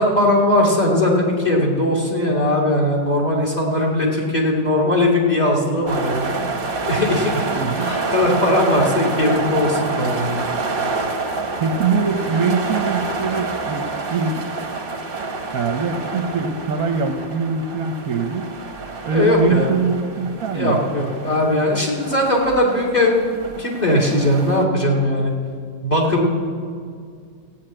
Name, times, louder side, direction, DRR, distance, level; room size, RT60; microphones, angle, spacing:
voice 1, 0.0-6.4 6.8-7.5 7.8-10.4 19.1-19.7 20.5-23.3 23.6-25.3 25.8-26.3, left 1 dB, 20° left, -1 dB, 2.2 m, -19 dB
sound 1, 5.9-24.6, right 3 dB, 40° right, 1.0 m, -28 dB
voice 2, 7.5-8.0 11.6-14.4 15.5-18.4 19.0-20.8, right 5 dB, 60° right, 5 dB, 1.1 m, -23 dB
15.5 x 7.8 x 8.8 m, 2.1 s
omnidirectional pair, 2.0 m